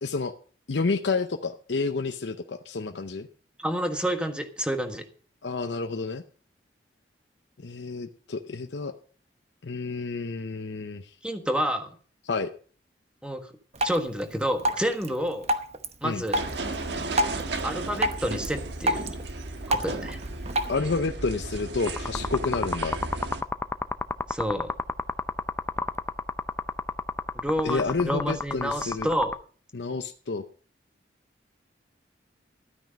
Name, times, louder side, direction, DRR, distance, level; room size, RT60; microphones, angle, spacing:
voice 1, 0.0-0.3 0.7-3.3 5.4-6.2 7.6-8.9 9.6-11.1 12.3-12.5 16.0-16.2 20.7-23.0 27.6-29.1 29.7-30.4, left 4 dB, 75° left, 7 dB, 0.7 m, -29 dB
voice 2, 3.6-5.0 11.2-12.0 13.2-13.5 13.8-15.5 16.0-16.4 17.6-19.1 19.7-20.2 24.3-24.7 27.3-29.3, equal, 5° right, 6 dB, 1.4 m, -29 dB
Drip, 13.7-20.7, right 1 dB, 35° right, 1.0 m, -31 dB
sound 1, 16.3-23.4, right 2 dB, 70° right, 1.4 m, -34 dB
sound 2, 21.9-29.4, left 3 dB, 15° left, 0.5 m, -31 dB
13.0 x 9.3 x 5.2 m, 0.42 s
head